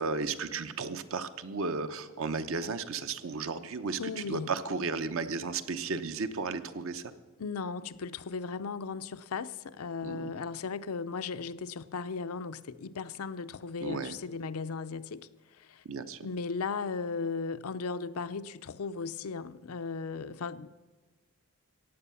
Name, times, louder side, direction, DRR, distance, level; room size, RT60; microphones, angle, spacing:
voice 1, 0.0-7.0 10.0-10.3 13.8-14.2 15.8-16.3, right 4 dB, 65° right, 0.8 m, -34 dB
voice 2, 4.0-4.5 7.4-15.8 16.2-20.7, left 4 dB, 75° left, 0.5 m, -36 dB
15.5 x 9.2 x 6.9 m
head